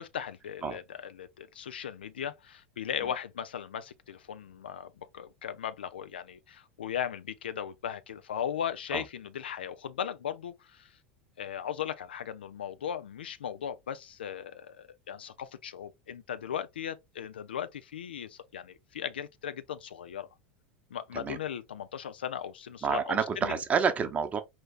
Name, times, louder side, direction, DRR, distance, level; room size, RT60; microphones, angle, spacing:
voice 1, 0.0-10.9 11.4-20.3 20.9-23.6, left 9 dB, 75° left, 0.4 m, -37 dB
voice 2, 22.8-24.4, right 6 dB, 25° right, 0.7 m, -28 dB
4.2 x 3.1 x 2.4 m
figure-of-eight pair, 80°, 6 cm